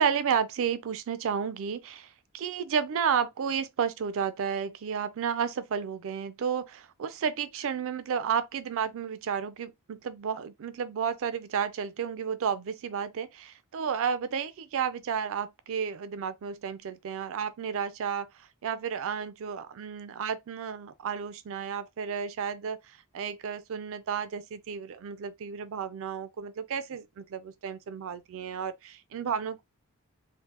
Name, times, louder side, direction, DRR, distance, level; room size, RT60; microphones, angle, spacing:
voice 1, 0.0-29.6, right 7 dB, 65° right, 0.4 m, -32 dB
3.2 x 2.0 x 2.9 m
head